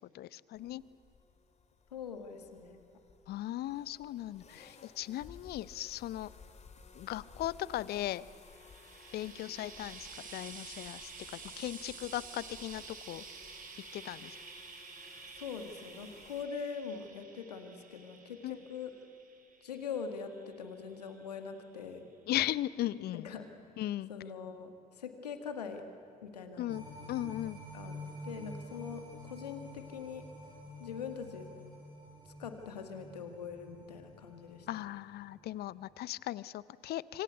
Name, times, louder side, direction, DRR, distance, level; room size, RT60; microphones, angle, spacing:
voice 1, 0.1-0.8 3.3-6.3 6.9-8.2 9.1-13.2 13.9-14.4 18.4-18.6 22.3-23.3 23.8-24.1 26.6-27.6 34.7-37.2, left 14 dB, 55° left, 20 dB, 0.7 m, -37 dB
sound 1, 0.5-16.5, left 5 dB, 35° left, 2.6 m, -57 dB
voice 2, 1.9-2.8 15.4-18.9 19.6-22.0 23.1-23.5 24.1-24.7 25.0-25.8 26.2-26.8 27.7-27.9 28.2-30.3 30.8-31.5 32.4-34.7, left 6 dB, 85° left, 7 dB, 1.9 m, -42 dB
Frying (food), 8.3-21.7 22.7-22.8, right 5 dB, 45° right, 4.3 m, -51 dB
sound 2, 26.7-35.1 35.5-35.6, left 1 dB, 25° right, 7.7 m, -48 dB
26.5 x 25.0 x 8.2 m, 2.7 s
figure-of-eight pair, 50°, 20 cm